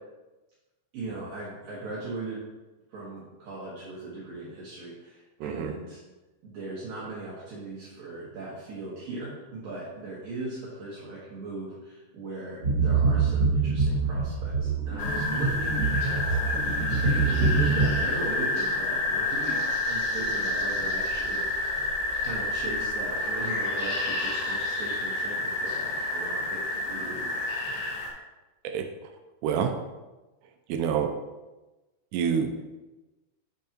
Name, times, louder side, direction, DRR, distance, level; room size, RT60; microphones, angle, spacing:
voice 1, 0.9-2.4 2.9-6.0 6.4-16.2 17.0-21.5 22.2-27.3, right 2 dB, 60° right, -7 dB, 2.9 m, -38 dB
voice 2, 5.4-5.7 28.6-28.9 29.4-29.7 30.7-31.1 32.1-32.5, right 7 dB, 80° right, 5 dB, 2.6 m, -27 dB
sound 1, 12.6-17.9, right 4 dB, 40° right, 2.4 m, -25 dB
sound 2, 15.0-28.1, left 2 dB, 75° left, 3.9 m, -29 dB
9.0 x 7.8 x 3.0 m, 1.1 s
omnidirectional pair, 5.0 m